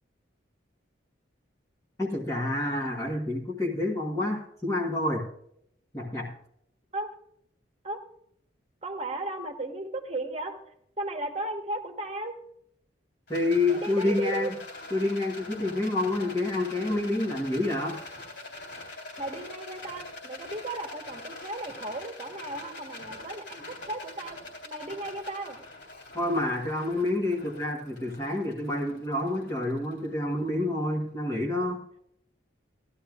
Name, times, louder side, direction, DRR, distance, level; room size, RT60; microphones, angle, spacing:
voice 1, 2.0-5.3 5.9-6.3 13.3-14.5 14.9-18.0 26.1-31.8, left 2 dB, 15° left, -3 dB, 1.3 m, -28 dB
voice 2, 8.8-10.6 11.0-12.3 13.7-14.5 19.2-24.4 24.6-25.6, right 2 dB, 30° right, 4 dB, 1.3 m, -35 dB
Rattle, 13.3-30.6, left 2 dB, 65° left, 3.2 m, -44 dB
16.0 x 11.5 x 2.4 m, 0.72 s
head